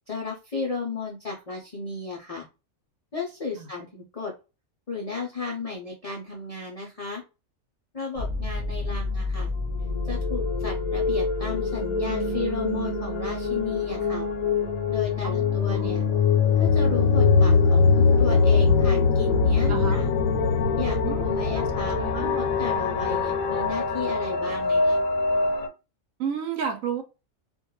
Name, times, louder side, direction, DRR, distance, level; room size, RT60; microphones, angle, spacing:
voice 1, 0.1-2.5 3.1-4.3 4.9-7.2 7.9-9.5 10.0-14.3 14.9-16.0 16.6-20.1 20.8-25.0, left 4 dB, 55° left, 0.4 m, -34 dB
sound 1, 8.2-16.0 19.3-25.3, left 1 dB, 55° right, 0.4 m, -34 dB
sound 2, 9.6-25.7, left 4 dB, 90° left, 1.0 m, -23 dB
voice 2, 15.2-15.6 19.7-20.0 21.0-22.4 26.2-27.0, right 7 dB, 75° right, 1.0 m, -32 dB
2.5 x 2.2 x 2.9 m
omnidirectional pair, 1.4 m